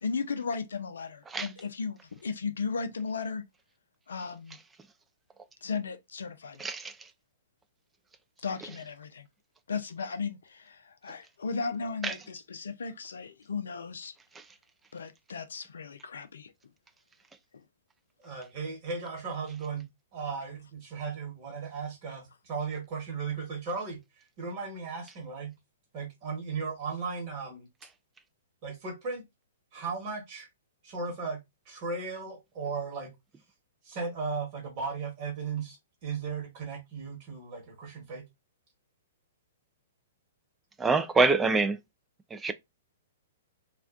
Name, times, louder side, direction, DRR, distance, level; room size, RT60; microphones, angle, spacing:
voice 1, 0.0-3.4 4.1-4.6 5.6-6.6 8.4-9.3 9.7-14.1 14.9-16.5 17.5-17.6, left 5 dB, 70° left, 0.4 m, -35 dB
voice 2, 6.6-7.0 12.0-12.1 14.4-14.5 40.8-41.8 42.3-42.5, right 3 dB, 15° right, 0.3 m, -25 dB
voice 3, 18.2-24.0 24.4-25.5 25.9-27.7 28.6-29.2 29.7-30.5 30.8-33.1 33.8-38.2, right 5 dB, 45° right, 1.2 m, -36 dB
2.4 x 2.2 x 2.4 m
figure-of-eight pair, 115°, 0 cm